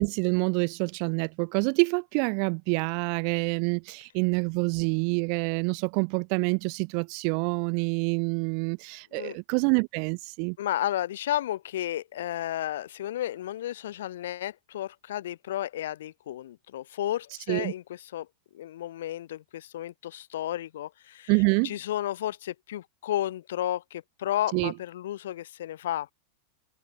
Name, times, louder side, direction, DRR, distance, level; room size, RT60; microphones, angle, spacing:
voice 1, 0.0-10.6 17.5-17.7 21.3-21.7 24.5-24.7, right 40 dB or more, 45° right, 1.2 m, -27 dB
voice 2, 10.6-18.3 18.5-21.3 21.6-26.1, left 12 dB, 60° left, 7.1 m, -32 dB
figure-of-eight pair, 90°, 0 cm